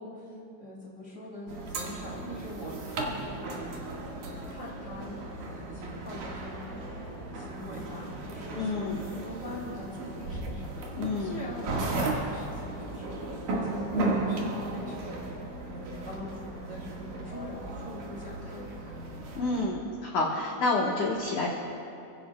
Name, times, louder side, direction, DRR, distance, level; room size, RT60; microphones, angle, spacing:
voice 1, 0.0-5.2 5.5-18.9 20.4-20.6, left 1 dB, 25° right, -6 dB, 2.0 m, -43 dB
sound 1, 1.5-19.6, right 2 dB, 55° right, 2.9 m, -35 dB
voice 2, 8.5-9.1 11.0-11.5 19.4-21.5, left 2 dB, 65° left, -3 dB, 1.9 m, -29 dB
28.5 x 16.0 x 2.3 m, 2.6 s
omnidirectional pair, 5.6 m